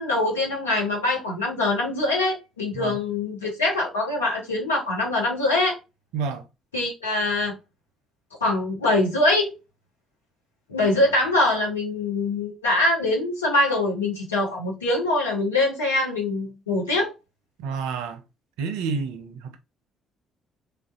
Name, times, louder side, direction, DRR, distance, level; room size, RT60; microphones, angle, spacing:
voice 1, 0.0-5.8 6.7-7.6 8.4-9.5 10.7-17.1, left 2 dB, 85° left, 0.9 m, -23 dB
voice 2, 6.1-6.4 17.6-18.2 18.6-19.6, right 5 dB, 70° right, 0.4 m, -29 dB
3.4 x 2.5 x 2.4 m
figure-of-eight pair, 45°, 0 cm